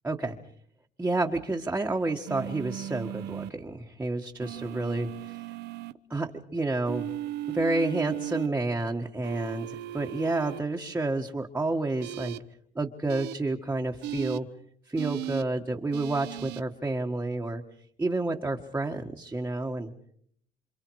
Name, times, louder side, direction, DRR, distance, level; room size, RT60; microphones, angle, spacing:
voice 1, 0.0-0.3 1.0-5.5 6.1-7.1 7.5-12.3 12.7-14.5 14.9-17.6 18.0-19.9, right 2 dB, 10° right, 1 dB, 1.6 m, -30 dB
sound 1, 2.3-3.5 4.4-5.9 6.9-8.5 9.2-10.6 12.0-12.4 13.1-13.3 14.0-14.4 15.0-15.4 15.9-16.6, right 13 dB, 80° right, 0.9 m, -36 dB
28.0 x 27.0 x 4.8 m, 0.63 s
cardioid pair, 110°, 17 cm